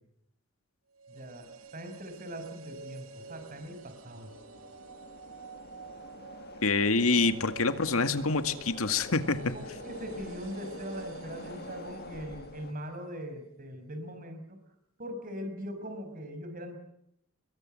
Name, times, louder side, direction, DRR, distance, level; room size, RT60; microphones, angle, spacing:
sound 1, 0.9-13.1 13.3-13.4, right 5 dB, 85° right, 2.3 m, -49 dB
voice 1, 1.1-4.3 9.5-14.6 15.0-16.8, equal, 40° right, 7 dB, 5.6 m, -41 dB
sound 2, 1.2-12.7, left 2 dB, 50° left, 1.9 m, -48 dB
voice 2, 6.6-9.4, left 3 dB, 85° left, 9 dB, 2.0 m, -26 dB
29.5 x 22.5 x 7.8 m, 0.78 s
head